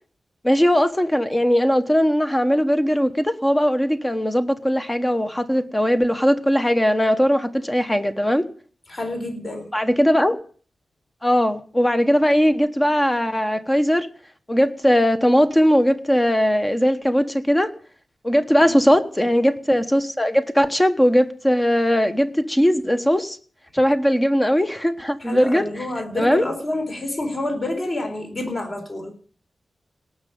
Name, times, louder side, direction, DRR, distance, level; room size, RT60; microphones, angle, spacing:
voice 1, 0.4-8.5 9.7-10.4 11.2-14.1 14.5-17.7 18.2-23.4 23.7-25.6 26.1-26.4, equal, 10° left, 9 dB, 1.1 m, -19 dB
voice 2, 8.9-9.7 18.6-18.9 25.2-29.1, left 2 dB, 30° left, 3 dB, 4.3 m, -28 dB
18.5 x 6.4 x 8.6 m, 0.43 s
wide cardioid pair, 130°, 0 cm